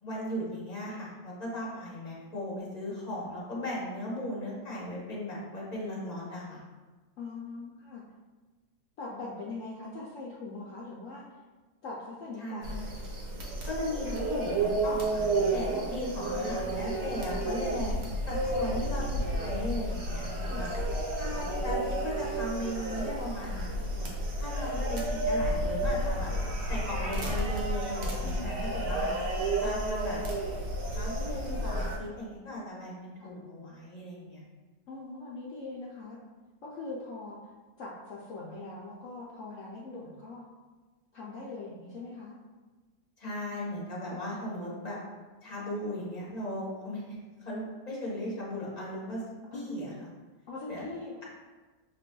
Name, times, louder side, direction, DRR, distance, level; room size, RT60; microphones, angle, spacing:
voice 1, 0.0-6.6 12.4-12.9 13.7-17.9 18.3-20.7 21.2-26.3 26.7-29.1 29.6-30.2 30.9-34.4 43.2-45.0 45.4-49.2 49.5-50.1 50.7-50.8, left 1 dB, 30° left, -6 dB, 0.8 m, -37 dB
voice 2, 7.2-8.0 9.0-11.2 11.8-12.8 15.7-16.1 20.5-20.7 28.2-28.5 33.2-33.3 34.9-36.2 36.6-37.4 37.8-40.5 41.1-42.3 49.5-49.7 50.5-51.2, left 3 dB, 70° left, -5 dB, 0.7 m, -41 dB
sound 1, 12.6-32.0, right 1 dB, 75° right, 1.4 m, -31 dB
6.7 x 2.5 x 2.2 m, 1.3 s
omnidirectional pair, 1.9 m